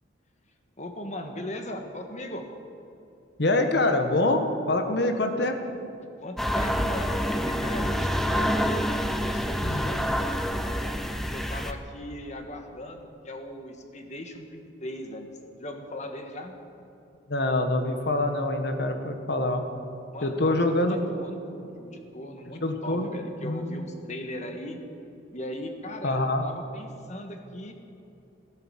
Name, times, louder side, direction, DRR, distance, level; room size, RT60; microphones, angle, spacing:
voice 1, 0.8-2.4 6.2-8.5 9.2-10.4 11.3-15.3 15.6-16.6 20.1-24.8 25.3-27.7, left 1 dB, 40° left, 5 dB, 1.6 m, -38 dB
voice 2, 3.4-5.8 9.6-9.9 17.3-19.6 20.2-21.0 22.6-23.1 23.4-23.8 26.0-26.4, left 2 dB, 60° left, 6 dB, 1.5 m, -25 dB
sound 1, 6.4-11.7, equal, ahead, 0.7 m, -27 dB
17.0 x 11.0 x 7.6 m, 2.8 s
head